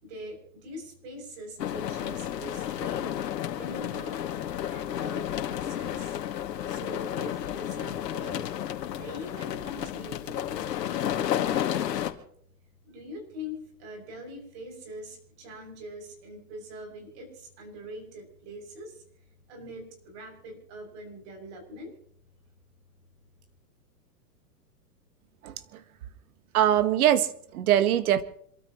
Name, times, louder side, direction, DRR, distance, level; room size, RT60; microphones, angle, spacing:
voice 1, 0.0-3.2 3.6-4.3 4.6-6.2 6.7-8.5 8.9-12.0 12.8-19.0 19.5-22.0, equal, 40° right, 3 dB, 7.3 m, -43 dB
sound 1, 1.6-12.1, left 11 dB, 80° left, 2.3 m, -32 dB
voice 2, 26.5-28.2, right 11 dB, 60° right, 11 dB, 1.8 m, -22 dB
27.5 x 13.5 x 3.1 m, 0.65 s
hypercardioid pair, 155°, 48 cm